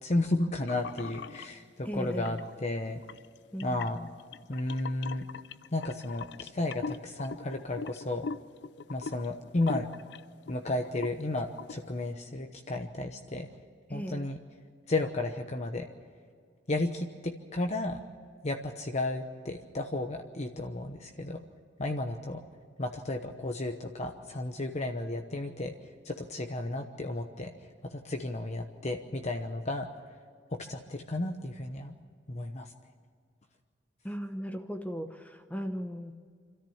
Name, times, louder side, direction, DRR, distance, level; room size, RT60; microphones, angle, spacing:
voice 1, 0.0-3.0 3.6-4.0 4.5-5.2 5.7-8.3 8.9-9.9 10.5-13.5 13.9-14.4 14.9-15.9 16.7-18.0 18.4-21.4 21.8-22.4 22.8-25.7 26.0-27.5 27.9-29.9 30.5-31.9 32.3-32.7, left 2 dB, 40° left, 5 dB, 1.0 m, -33 dB
sound 1, 0.7-1.5 2.1-2.5 3.0-10.6 10.8-11.2 11.6-11.8, left 5 dB, 70° left, 0.5 m, -41 dB
voice 2, 1.8-2.4 3.5-4.1 13.9-14.3 34.0-36.2, equal, 10° left, 5 dB, 0.9 m, -37 dB
26.0 x 13.5 x 7.3 m, 2.1 s
head